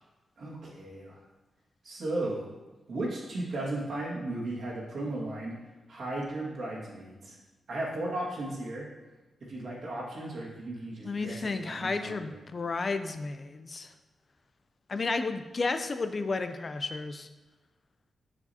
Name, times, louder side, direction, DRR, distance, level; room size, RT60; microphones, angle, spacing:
voice 1, 0.4-1.2 1.8-2.5 2.9-5.6 5.9-7.4 7.7-8.9 9.5-12.4, right 1 dB, 65° right, -4 dB, 1.9 m, -35 dB
voice 2, 11.0-13.9 14.9-17.3, left 3 dB, 40° left, 9 dB, 0.4 m, -32 dB
7.0 x 6.6 x 2.8 m, 1.1 s
wide cardioid pair, 115°, 0 cm